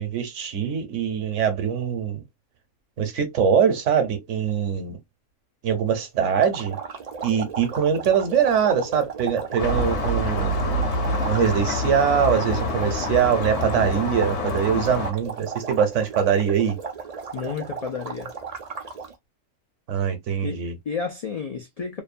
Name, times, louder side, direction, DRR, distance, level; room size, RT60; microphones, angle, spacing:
voice 1, 0.0-2.2 3.0-5.0 5.6-6.8 7.2-10.5 11.2-16.8 19.9-20.7, right 7 dB, 75° right, 1.1 m, -23 dB
sound 1, 6.3-19.1, right 5 dB, 45° right, 0.5 m, -35 dB
sound 2, 9.6-15.1, left 2 dB, 65° left, 1.0 m, -26 dB
voice 2, 17.3-18.3 20.4-22.0, left 5 dB, 90° left, 0.3 m, -31 dB
2.7 x 2.1 x 2.4 m
omnidirectional pair, 1.3 m